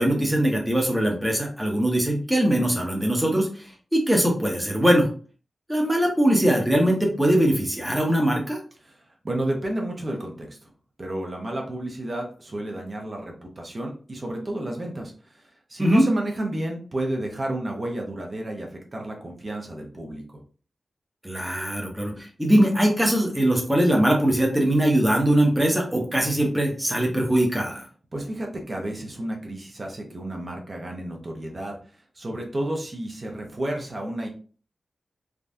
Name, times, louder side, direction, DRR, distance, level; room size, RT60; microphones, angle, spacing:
voice 1, 0.0-5.1 5.7-8.6 15.8-16.0 21.2-27.9, right 1 dB, 5° right, 0 dB, 0.8 m, -21 dB
voice 2, 8.8-10.7 11.0-20.2 28.1-31.8 32.1-34.3, right 1 dB, 35° right, 1 dB, 0.7 m, -31 dB
3.4 x 2.2 x 2.6 m, 0.40 s
wide cardioid pair, 115°, 0 cm